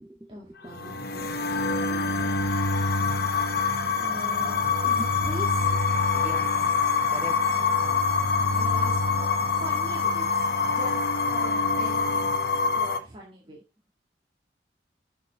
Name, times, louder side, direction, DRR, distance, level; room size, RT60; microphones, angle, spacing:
voice 1, 0.3-2.5 4.0-6.1 8.5-13.6, equal, 30° right, 2.1 m, -42 dB
sound 1, 0.7-13.0, left 4 dB, 55° left, 0.9 m, -25 dB
voice 2, 6.1-7.4, equal, 10° right, 0.4 m, -42 dB
8.1 x 7.0 x 4.0 m
head